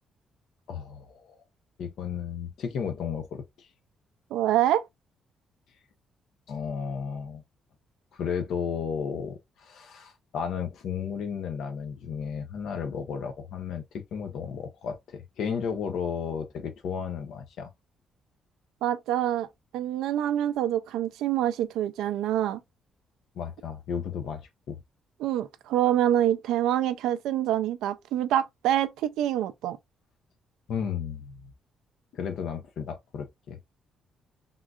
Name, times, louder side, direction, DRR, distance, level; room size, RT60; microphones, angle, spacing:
voice 1, 0.7-1.4 1.8-3.7 6.5-7.4 8.1-17.7 23.4-24.8 30.7-31.4 32.1-33.6, left 7 dB, 75° left, 0.6 m, -33 dB
voice 2, 4.3-4.9 18.8-19.5 19.7-22.6 25.2-29.8, right 12 dB, 90° right, 0.3 m, -26 dB
3.7 x 2.4 x 2.3 m
cardioid pair, 90°, 0 cm